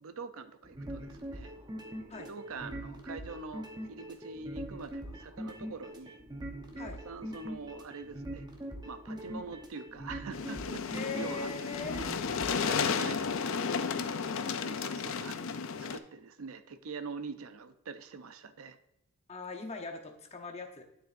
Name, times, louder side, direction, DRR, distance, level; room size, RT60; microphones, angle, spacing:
voice 1, 0.0-1.5 2.2-6.2 7.0-8.4 8.9-10.8 11.2-11.5 12.4-13.3 14.6-15.4 15.8-18.8, right 4 dB, 70° right, 10 dB, 0.6 m, -44 dB
sound 1, 0.6-13.5, equal, 20° right, 0.9 m, -43 dB
sound 2, 10.3-16.0, left 6 dB, 65° left, 0.5 m, -33 dB
voice 2, 10.9-12.0 19.3-20.8, left 4 dB, 30° left, 4 dB, 0.8 m, -40 dB
9.4 x 7.5 x 2.6 m, 0.87 s
head